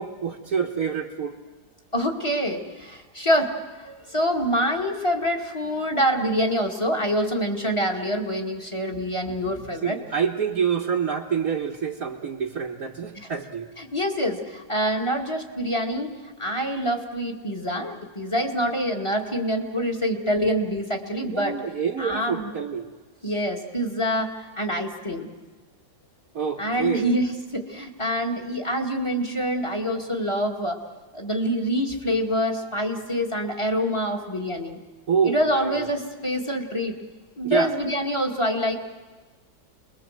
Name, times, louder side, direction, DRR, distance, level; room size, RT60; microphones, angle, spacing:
voice 1, 0.0-1.4 9.8-13.7 21.2-22.9 26.3-27.1 35.1-35.9 37.4-37.7, right 7 dB, 55° right, -1 dB, 1.8 m, -27 dB
voice 2, 1.9-10.0 13.8-16.1 16.4-21.5 22.0-22.5 23.2-25.3 26.6-30.8 31.1-34.8 35.2-37.0 37.4-38.8, equal, 15° left, 3 dB, 2.3 m, -26 dB
29.0 x 21.5 x 7.7 m, 1.3 s
omnidirectional pair, 2.0 m